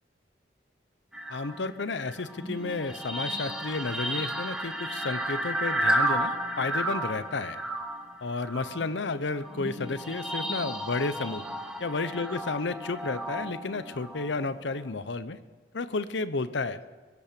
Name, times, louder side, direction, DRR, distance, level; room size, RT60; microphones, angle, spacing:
sound 1, 1.1-14.9, right 1 dB, 5° right, 1.0 m, -33 dB
voice 1, 1.3-7.6 8.2-11.5 11.8-15.4 15.7-16.8, left 3 dB, 85° left, 14 dB, 0.8 m, -32 dB
22.0 x 8.6 x 6.8 m, 1.4 s
head